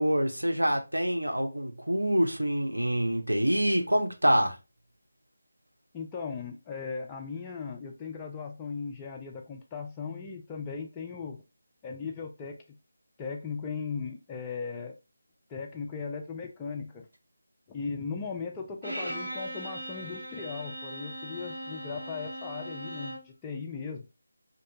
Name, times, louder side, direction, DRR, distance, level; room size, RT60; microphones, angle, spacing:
voice 1, 0.0-4.6, equal, 85° right, 0.6 m, -26 dB
voice 2, 5.9-11.4 11.8-12.5 13.2-15.0 15.5-17.0 17.7-24.0, left 5 dB, 15° left, 0.3 m, -37 dB
Bowed string instrument, 18.8-23.3, right 1 dB, 65° right, 1.2 m, -39 dB
2.6 x 2.1 x 2.7 m
figure-of-eight pair, 160°, 0 cm